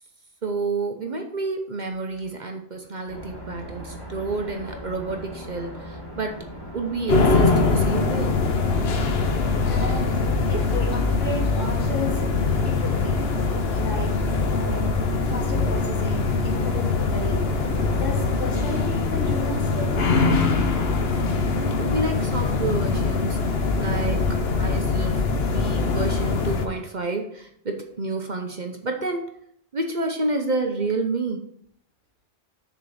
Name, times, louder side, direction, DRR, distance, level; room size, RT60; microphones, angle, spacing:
voice 1, 0.4-6.4 6.7-8.4 21.5-29.4 29.7-31.4, right 3 dB, 40° right, 4 dB, 0.9 m, -29 dB
sound 1, 3.1-18.9, equal, 20° left, 1.7 m, -39 dB
sound 2, 7.1-26.7, left 4 dB, 55° left, 1.0 m, -23 dB
voice 2, 8.8-13.3 13.7-14.2 14.5-14.9 15.2-17.4 17.9-20.1, left 1 dB, 80° left, -2 dB, 2.7 m, -34 dB
6.6 x 4.5 x 6.7 m, 0.70 s
omnidirectional pair, 1.3 m